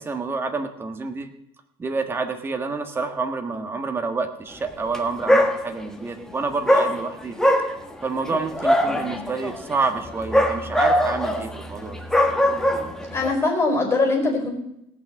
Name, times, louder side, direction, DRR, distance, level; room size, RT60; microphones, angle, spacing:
voice 1, 0.0-1.3 1.8-7.4 8.0-12.0, right 4 dB, 20° right, 6 dB, 1.5 m, -28 dB
Dog, 4.8-5.0 5.3-6.0 6.7-13.3, equal, 5° left, 1.4 m, -22 dB
voice 2, 8.8-9.3 13.1-14.5, left 3 dB, 20° left, 2 dB, 4.5 m, -22 dB
18.0 x 6.3 x 7.3 m, 0.81 s
cardioid pair, 130°, 12 cm